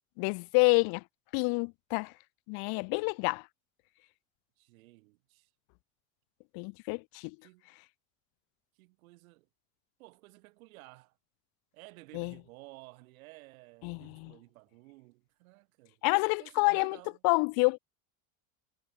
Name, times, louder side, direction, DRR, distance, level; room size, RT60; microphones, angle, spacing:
voice 1, 0.2-1.0 1.3-2.1 2.5-3.5 6.5-7.4 12.1-12.3 13.8-14.3 16.0-17.0 17.2-17.8, left 33 dB, 60° left, 0.7 m, -28 dB
voice 2, 4.6-5.5 7.4-7.8 8.8-9.5 10.0-11.2 11.7-16.0 16.4-17.2, right 22 dB, 80° right, 5.7 m, -54 dB
supercardioid pair, 110°, 42 cm